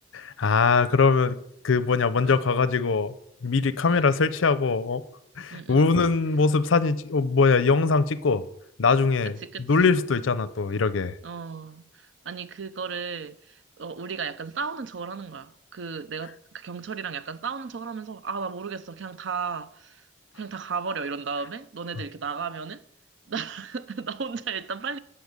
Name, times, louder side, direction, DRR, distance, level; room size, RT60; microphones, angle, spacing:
voice 1, 0.1-1.4 1.6-3.1 3.4-5.0 5.4-8.4 8.8-9.4 9.7-11.1, left 4 dB, 85° left, 0.6 m, -22 dB
voice 2, 3.8-4.1 5.5-5.9 9.2-9.9 11.2-20.1 20.4-22.8 23.3-25.0, right 5 dB, 70° right, 0.5 m, -34 dB
12.5 x 4.3 x 8.2 m
head